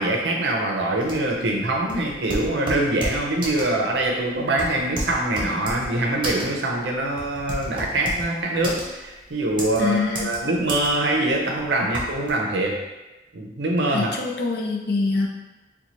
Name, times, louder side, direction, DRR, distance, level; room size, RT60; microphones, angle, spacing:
voice 1, 0.0-12.8 13.3-14.1, right 2 dB, 75° right, 0 dB, 0.6 m, -24 dB
sound 1, 1.0-12.3, right 1 dB, 30° right, 0.7 m, -32 dB
voice 2, 9.8-10.3 13.9-15.3, left 3 dB, 60° left, 0 dB, 0.5 m, -24 dB
4.2 x 2.3 x 3.0 m, 1.1 s
head